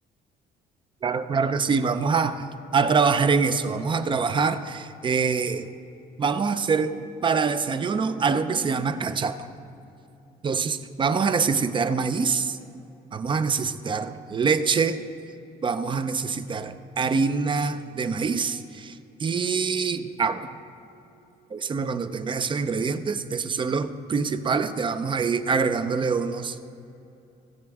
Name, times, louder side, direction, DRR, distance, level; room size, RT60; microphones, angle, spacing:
voice 1, 1.0-2.5 2.7-5.7 6.2-9.5 10.4-12.6 13.1-15.0 15.6-20.5 21.5-26.6, right 5 dB, 30° right, 11 dB, 0.5 m, -25 dB
17.0 x 6.9 x 3.6 m, 2.8 s
cardioid pair, 110°, 17 cm